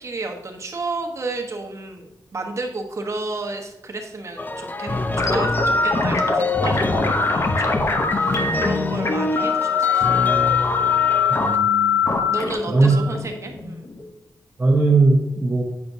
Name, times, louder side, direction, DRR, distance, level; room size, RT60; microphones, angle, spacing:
voice 1, 0.0-7.9 8.2-10.1 12.3-13.9, right 3 dB, 45° right, 3 dB, 1.1 m, -32 dB
sound 1, 4.4-11.6, left 2 dB, 25° left, 0.4 m, -27 dB
sound 2, 5.2-14.1, left 5 dB, 45° left, 0.8 m, -22 dB
voice 2, 11.3-12.0 12.7-13.0 14.6-15.6, right 3 dB, 25° right, -4 dB, 1.2 m, -18 dB
8.6 x 5.8 x 2.7 m, 0.89 s
wide cardioid pair, 90°, 7 cm